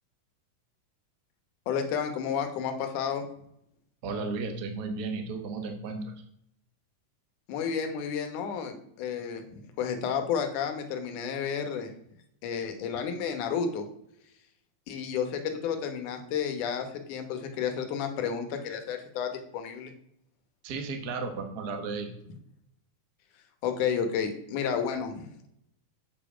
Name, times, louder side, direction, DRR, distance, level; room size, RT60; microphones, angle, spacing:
voice 1, 1.7-3.2 7.5-11.9 12.4-13.9 14.9-19.9 23.6-25.3, left 7 dB, 75° left, 6 dB, 2.6 m, -31 dB
voice 2, 4.0-6.0 20.6-22.1, right 4 dB, 85° right, 5 dB, 0.8 m, -34 dB
8.0 x 7.4 x 5.0 m, 0.72 s
omnidirectional pair, 3.8 m